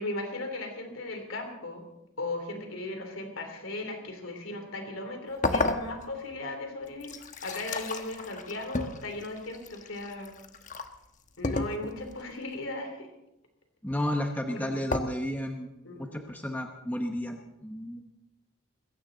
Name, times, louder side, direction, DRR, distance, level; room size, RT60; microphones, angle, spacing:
voice 1, 0.0-1.8 2.2-7.1 7.4-10.3 11.4-13.1 14.5-14.7 15.8-16.3, left 2 dB, 80° left, 4 dB, 3.2 m, -37 dB
sound 1, 5.4-6.3 6.9-10.9 11.4-12.2 14.9-15.0, left 2 dB, 40° left, 1.1 m, -32 dB
voice 2, 13.8-18.0, left 1 dB, 10° left, 3 dB, 1.0 m, -33 dB
21.0 x 16.5 x 3.9 m, 0.90 s
head